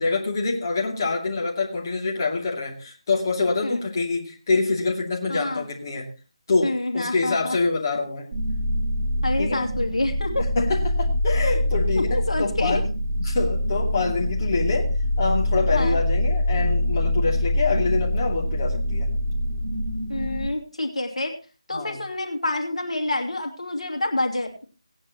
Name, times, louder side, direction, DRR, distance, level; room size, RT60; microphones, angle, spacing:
voice 1, 0.0-6.1 6.5-8.3 9.4-9.6 10.6-12.1 12.4-12.8 13.2-14.9 15.2-19.1 21.7-22.0, left 3 dB, 35° left, -3 dB, 2.7 m, -25 dB
voice 2, 5.3-5.6 6.6-7.6 9.2-10.5 11.9-12.8 15.7-16.0 20.1-21.3 21.7-24.6, left 2 dB, 75° left, 3 dB, 2.7 m, -27 dB
sound 1, 8.3-20.5, left 1 dB, 10° right, 5.6 m, -24 dB
18.5 x 9.7 x 3.0 m, 0.33 s
figure-of-eight pair, 160°, 3 cm